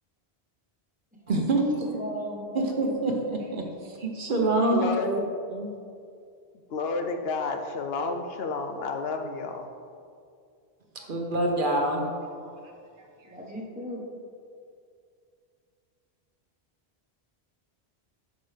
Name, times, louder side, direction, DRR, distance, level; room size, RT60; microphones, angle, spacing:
voice 1, 1.3-1.7 2.5-5.2 5.5-5.7 10.9-12.3, right 2 dB, 55° right, 1 dB, 1.0 m, -26 dB
voice 2, 1.8-3.0 13.2-14.0, right 1 dB, 10° right, -3 dB, 1.1 m, -36 dB
voice 3, 4.7-5.3 6.7-9.7, left 4 dB, 70° left, 5 dB, 0.8 m, -30 dB
8.8 x 6.0 x 3.3 m, 2.3 s
omnidirectional pair, 1.1 m